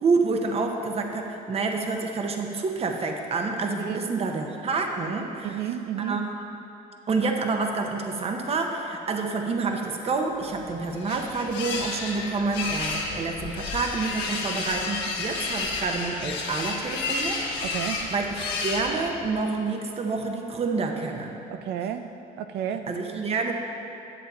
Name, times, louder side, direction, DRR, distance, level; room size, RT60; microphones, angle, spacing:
voice 1, 0.0-5.6 6.0-6.3 7.1-17.4 17.7-21.4 22.9-23.5, right 4 dB, 35° right, 3 dB, 0.9 m, -28 dB
voice 2, 5.4-6.2 17.6-18.1 21.5-22.1 22.4-22.9, right 10 dB, 80° right, 8 dB, 0.5 m, -31 dB
sound 1, 10.5-19.4, left 3 dB, 85° left, 1.3 m, -31 dB
Crying sobbing, 11.4-12.7 13.7-14.5 14.8-15.3 15.9-16.2 17.9-18.0, left 4 dB, 60° left, 0.9 m, -45 dB
10.0 x 7.6 x 4.2 m, 2.8 s
cardioid pair, 110°, 17 cm